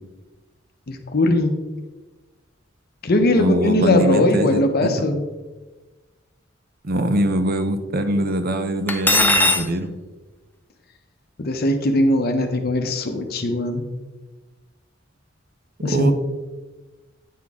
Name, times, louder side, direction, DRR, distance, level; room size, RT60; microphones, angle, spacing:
voice 1, 0.9-1.5 3.0-5.2 11.4-13.8 15.8-16.1, left 1 dB, 55° left, 5 dB, 0.7 m, -20 dB
voice 2, 3.3-4.9 6.8-9.9 15.8-16.1, right 1 dB, 50° right, 8 dB, 0.8 m, -22 dB
Cutlery silverware, 8.9-9.7, left 2 dB, 10° left, 0.5 m, -17 dB
9.4 x 5.9 x 3.6 m, 1.2 s
head